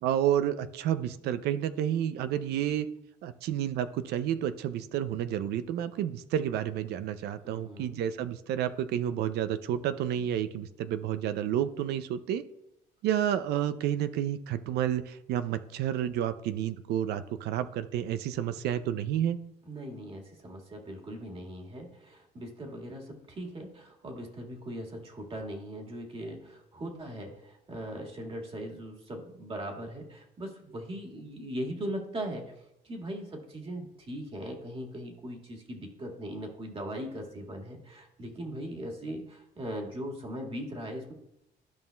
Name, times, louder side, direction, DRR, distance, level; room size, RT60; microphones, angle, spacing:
voice 1, 0.0-2.9 3.2-12.4 13.0-19.4, right 10 dB, 75° right, 13 dB, 0.5 m, -30 dB
voice 2, 7.4-8.0 19.7-32.5 32.8-41.1, right 1 dB, 30° right, 1 dB, 1.8 m, -39 dB
13.0 x 5.4 x 2.3 m, 0.82 s
cardioid pair, 110°, 17 cm